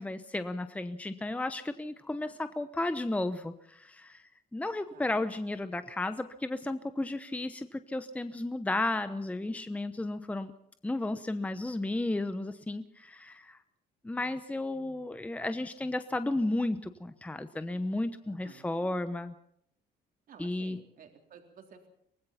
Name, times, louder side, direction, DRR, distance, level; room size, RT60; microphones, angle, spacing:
voice 1, 0.0-10.5 10.8-13.6 14.0-19.3 20.4-20.8, left 2 dB, 10° left, 10 dB, 0.9 m, -33 dB
voice 2, 18.2-18.7 20.3-21.9, right 7 dB, 55° right, 3 dB, 3.6 m, -54 dB
24.0 x 18.5 x 5.8 m, 0.72 s
cardioid pair, 110°, 17 cm